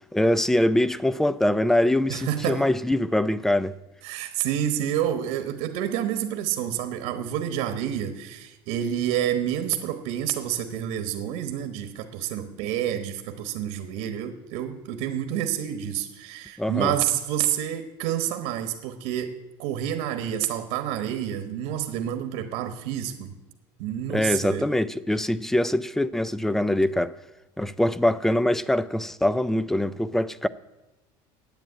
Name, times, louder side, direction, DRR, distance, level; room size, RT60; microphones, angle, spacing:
voice 1, 0.1-3.8 16.6-16.9 24.1-27.1 27.6-30.5, left 1 dB, 5° left, 0.3 m, -23 dB
voice 2, 2.1-2.6 4.0-23.3 23.8-24.7, right 10 dB, 75° right, 1.2 m, -28 dB
10.5 x 8.9 x 8.6 m
cardioid pair, 150°, 11 cm